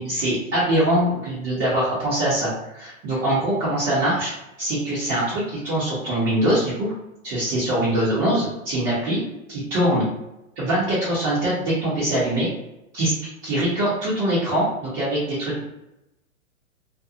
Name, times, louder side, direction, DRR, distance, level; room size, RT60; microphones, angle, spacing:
voice 1, 0.0-4.3 4.6-6.9 7.2-9.2 9.5-10.0 10.6-12.5 12.9-13.1 13.4-15.6, right 1 dB, 25° right, -10 dB, 0.9 m, -23 dB
2.5 x 2.2 x 2.7 m, 0.90 s
hypercardioid pair, 135°, 41 cm